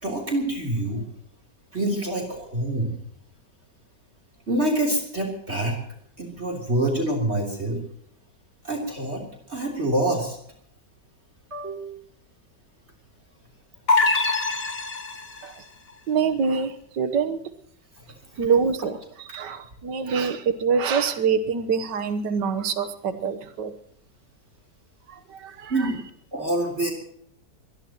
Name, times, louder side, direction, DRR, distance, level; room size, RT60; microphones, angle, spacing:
voice 1, 0.0-1.0 1.7-2.9 4.5-5.8 6.2-7.8 8.6-9.2 9.5-10.4 11.5-11.9 18.0-18.1 19.3-19.4 25.7-26.0 26.3-26.9, right 1 dB, 40° right, 1 dB, 3.7 m, -26 dB
sound 1, 13.9-15.5, left 3 dB, 40° left, 1.5 m, -23 dB
voice 2, 16.1-17.4 18.4-19.0 19.3-23.7 25.1-25.7, right 6 dB, 85° right, 10 dB, 1.8 m, -25 dB
23.5 x 20.0 x 3.0 m, 0.66 s
omnidirectional pair, 1.8 m